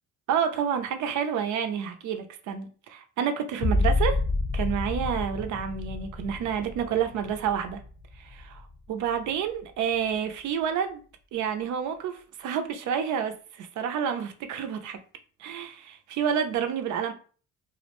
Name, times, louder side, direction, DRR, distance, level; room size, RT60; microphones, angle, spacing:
voice 1, 0.3-4.2 4.5-7.8 8.2-8.6 8.9-11.0 11.3-15.0 15.4-17.1, right 8 dB, 75° right, 0.5 m, -29 dB
sound 1, 3.6-9.0 9.5-10.1, left 2 dB, 40° left, 0.6 m, -30 dB
2.4 x 2.1 x 2.9 m
cardioid pair, 90°, 30 cm